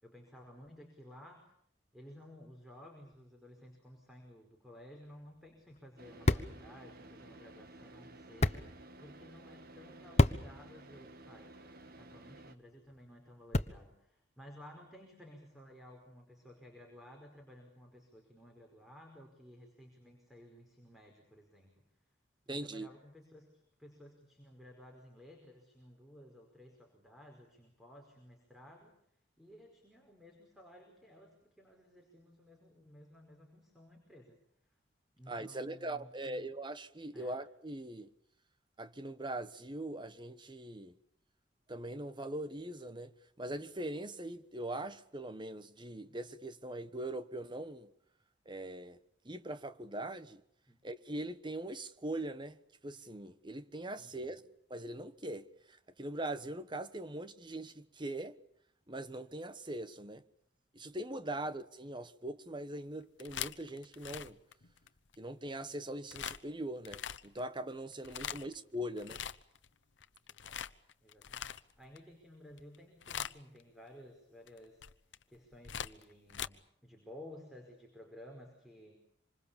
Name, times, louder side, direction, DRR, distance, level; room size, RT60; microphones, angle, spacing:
voice 1, 0.0-1.5 1.9-11.5 11.9-21.9 22.4-29.0 29.4-34.4 35.2-36.5 37.1-37.4 50.7-50.8 54.0-54.4 68.2-68.6 70.3-70.6 71.0-71.5 71.8-74.8 75.3-79.0, equal, ahead, 5.1 m, -55 dB
sound 1, 5.0-14.1, left 1 dB, 40° left, 1.2 m, -36 dB
Car / Idling, 6.0-12.6, right 2 dB, 55° right, 1.8 m, -54 dB
voice 2, 22.5-22.9 35.3-38.1 38.8-40.9 41.7-47.9 48.4-49.0 49.2-50.4 50.8-52.6 52.8-54.4 54.7-58.4 58.9-60.2 60.7-64.4 65.2-69.2, right 1 dB, 25° right, 1.3 m, -41 dB
sound 2, 63.0-65.2 66.1-66.4 66.8-67.4 67.9-68.6 69.0-69.7 70.0-72.0 72.5-72.8 73.0-73.6 74.5-76.5, left 9 dB, 85° left, 1.0 m, -42 dB
26.5 x 26.5 x 7.1 m
head